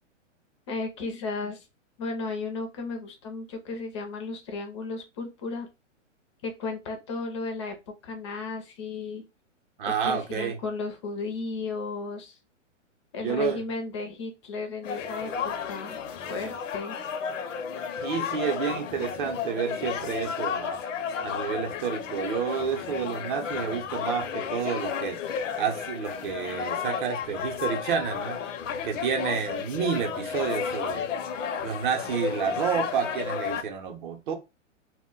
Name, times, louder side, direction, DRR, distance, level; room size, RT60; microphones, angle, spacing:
voice 1, 0.7-1.7 2.0-5.7 6.4-9.3 9.8-12.4 13.1-16.0 16.3-17.0, left 3 dB, 25° left, 0.4 m, -34 dB
voice 2, 9.8-10.6 13.2-13.6 18.0-20.8 21.2-25.2 25.6-28.4 28.8-31.0 31.6-34.4, right 7 dB, 40° right, 0.6 m, -30 dB
sound 1, 14.8-33.6, left 7 dB, 80° left, 0.5 m, -33 dB
2.1 x 2.1 x 3.6 m
hypercardioid pair, 140°, 38 cm